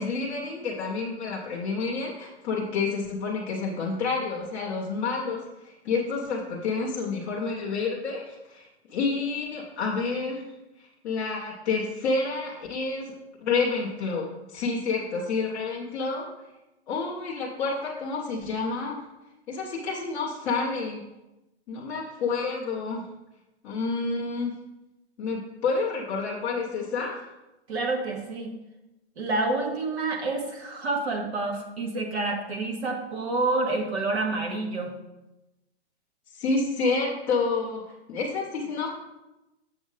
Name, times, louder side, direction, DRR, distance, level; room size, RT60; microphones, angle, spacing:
voice 1, 0.0-10.5 10.8-13.1 13.4-16.3 16.9-19.1 19.5-21.0 21.7-23.1 23.6-24.5 25.2-27.2 36.3-37.8 38.1-38.9, left 4 dB, 5° left, -7 dB, 0.3 m, -29 dB
voice 2, 27.7-28.5 29.2-34.9, right 2 dB, 70° right, 2 dB, 1.9 m, -28 dB
7.1 x 7.0 x 3.8 m, 0.98 s
hypercardioid pair, 160°, 33 cm